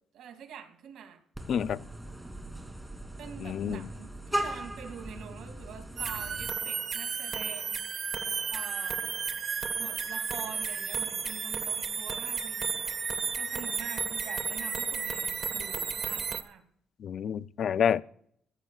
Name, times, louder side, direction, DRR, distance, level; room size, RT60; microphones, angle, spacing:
voice 1, 0.1-1.2 3.2-7.8 8.5-9.0 9.7-12.7 13.4-16.6, right 7 dB, 80° right, 2.7 m, -45 dB
Vehicle horn car horn honking, 1.3-6.5, right 1 dB, 5° right, 2.9 m, -38 dB
voice 2, 1.5-1.8 3.4-3.9 17.0-18.0, left 8 dB, 60° left, 0.5 m, -28 dB
sound 1, 6.0-16.4, right 6 dB, 50° right, 1.4 m, -33 dB
25.0 x 15.0 x 2.4 m
cardioid pair, 90°, 0 cm